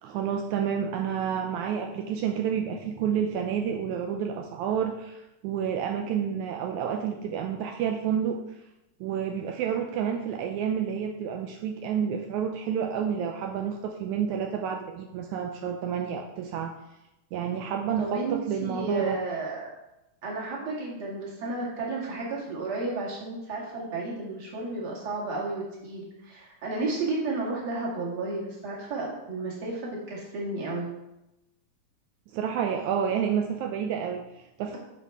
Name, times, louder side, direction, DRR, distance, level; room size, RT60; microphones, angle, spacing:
voice 1, 0.0-8.4 9.0-16.7 17.3-19.2 32.3-34.8, right 8 dB, 80° right, 3 dB, 1.9 m, -29 dB
voice 2, 18.0-19.7 20.2-30.9, right 3 dB, 35° right, -4 dB, 2.3 m, -32 dB
10.0 x 6.0 x 3.6 m, 0.92 s
omnidirectional pair, 3.5 m